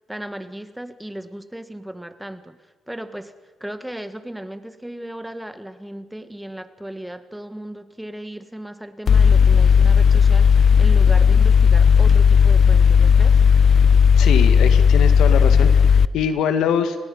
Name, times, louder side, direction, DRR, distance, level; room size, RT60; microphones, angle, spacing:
voice 1, 0.0-2.6 2.9-3.3 3.6-13.4, right 1 dB, 5° right, 10 dB, 1.6 m, -36 dB
Mechanical fan, 9.1-16.0, left 6 dB, 50° left, 0.6 m, -14 dB
voice 2, 14.2-17.0, left 8 dB, 85° left, 9 dB, 2.0 m, -23 dB
29.5 x 19.0 x 5.6 m, 1.3 s
cardioid pair, 90°, 0 cm